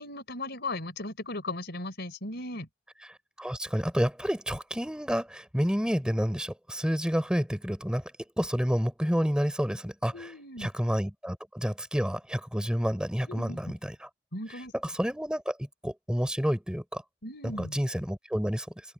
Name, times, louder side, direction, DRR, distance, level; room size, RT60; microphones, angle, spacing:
voice 1, 0.0-2.7 10.1-10.7 13.3-13.7 14.3-14.7 17.2-17.8, left 2 dB, 60° left, 4.5 m, -37 dB
voice 2, 3.1-10.3 10.6-14.1 14.8-17.0 17.4-18.7, equal, 5° right, 4.2 m, -29 dB
open air
head